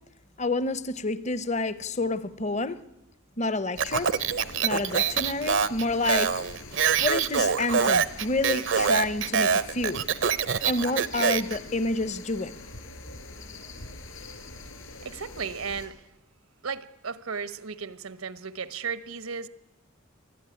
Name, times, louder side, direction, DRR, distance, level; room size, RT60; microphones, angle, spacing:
voice 1, 0.4-2.8 3.4-4.1 4.6-6.3 7.0-10.0 10.7-12.6, left 2 dB, 30° left, 0.8 m, -29 dB
sound 1, 3.7-15.9, left 3 dB, 70° left, 5.0 m, -44 dB
Speech, 3.8-11.6, right 6 dB, 60° right, 0.7 m, -25 dB
voice 2, 15.0-16.0 16.6-19.5, right 5 dB, 85° right, 1.1 m, -35 dB
23.5 x 15.0 x 9.8 m
head